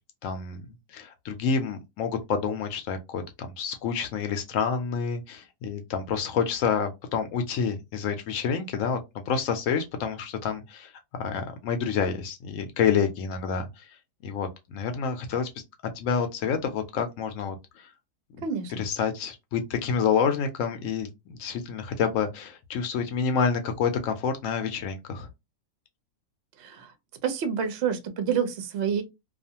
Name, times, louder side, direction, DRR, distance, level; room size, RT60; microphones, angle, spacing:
voice 1, 0.2-0.7 0.9-9.0 9.3-13.9 14.2-15.5 16.0-17.9 18.4-18.5 18.8-25.3, left 6 dB, 70° left, 0.8 m, -28 dB
voice 2, 18.4-18.7 26.6-26.9 27.2-29.0, right 7 dB, 60° right, 0.7 m, -28 dB
2.4 x 2.4 x 2.7 m
omnidirectional pair, 1.6 m